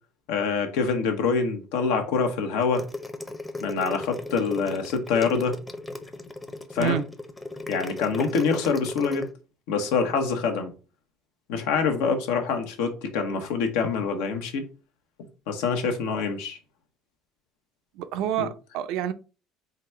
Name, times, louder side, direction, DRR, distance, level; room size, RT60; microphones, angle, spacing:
voice 1, 0.3-2.8 3.6-5.6 6.7-7.0 7.7-9.3 9.7-10.7 11.5-14.6 15.5-16.6 18.4-18.5, left 5 dB, 85° left, 0.9 m, -25 dB
sound 1, 2.6-9.3, left 2 dB, 10° left, 0.6 m, -35 dB
voice 2, 18.0-19.1, right 11 dB, 75° right, 0.5 m, -28 dB
3.8 x 2.3 x 4.3 m
supercardioid pair, 100°, 0 cm